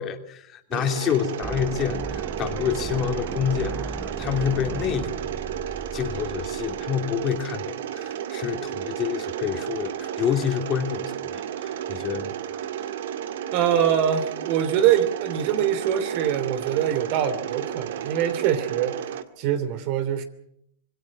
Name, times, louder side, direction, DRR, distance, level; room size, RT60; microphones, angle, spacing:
voice 1, 0.0-5.3 5.7-12.3, left 9 dB, 35° left, 6 dB, 3.0 m, -28 dB
Mechanisms, 0.7-19.2, right 10 dB, 75° right, 2.0 m, -32 dB
sound 1, 1.4-7.4, right 3 dB, 10° right, 0.9 m, -36 dB
voice 2, 13.5-20.2, right 10 dB, 55° right, 10 dB, 3.0 m, -24 dB
26.0 x 21.0 x 6.1 m, 0.73 s
hypercardioid pair, 115°, 0 cm